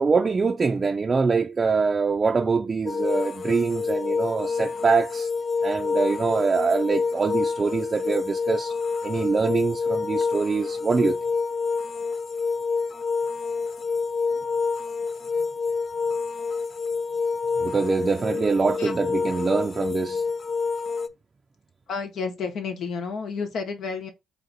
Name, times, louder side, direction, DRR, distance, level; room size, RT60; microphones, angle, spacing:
voice 1, 0.0-5.3 5.6-8.7 9.0-11.2 17.6-20.2, right 4 dB, 40° right, 0.4 m, -24 dB
sound 1, 2.9-21.1, left 4 dB, 45° left, 0.4 m, -27 dB
voice 2, 21.9-24.1, left 5 dB, 70° left, 0.9 m, -31 dB
3.5 x 2.7 x 4.0 m
supercardioid pair, 60°, 0 cm